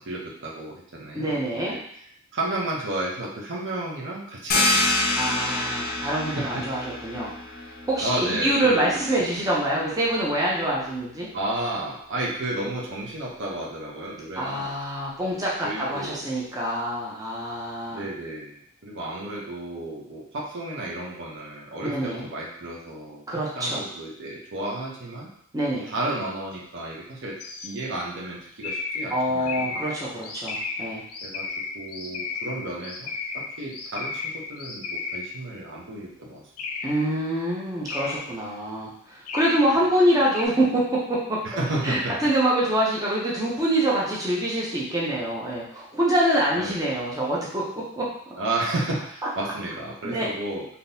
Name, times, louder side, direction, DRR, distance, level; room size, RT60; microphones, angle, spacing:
voice 1, 0.0-1.8 2.3-5.2 6.2-6.6 8.0-8.9 11.3-14.8 15.6-16.3 17.9-25.3 25.9-29.8 31.2-36.4 41.4-42.2 46.5-46.8 48.4-50.7, right 1 dB, 55° right, -3 dB, 0.7 m, -32 dB
voice 2, 1.1-1.7 5.1-7.3 7.8-11.3 14.4-18.0 21.8-22.2 23.3-23.8 25.5-25.9 29.1-31.0 36.8-41.4 41.8-48.1 50.0-50.3, right 1 dB, 15° right, -5 dB, 0.6 m, -25 dB
sound 1, 4.5-9.9, left 2 dB, 40° left, 0.6 m, -27 dB
sound 2, 27.4-27.7 28.6-35.5 36.6-37.1 37.8-38.4 39.3-39.8 40.3-40.5, left 4 dB, 90° left, 0.5 m, -34 dB
3.6 x 2.8 x 2.7 m, 0.68 s
head